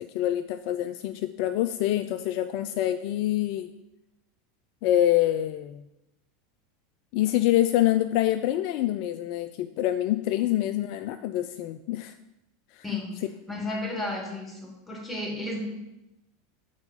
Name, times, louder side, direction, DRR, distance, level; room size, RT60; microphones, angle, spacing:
voice 1, 0.0-3.7 4.8-5.9 7.1-12.1 12.7-13.0, left 13 dB, 55° left, 10 dB, 0.3 m, -26 dB
voice 2, 12.8-13.2 13.5-15.6, left 1 dB, 5° left, 0 dB, 2.3 m, -33 dB
6.5 x 4.6 x 5.3 m, 0.91 s
hypercardioid pair, 85°, 0 cm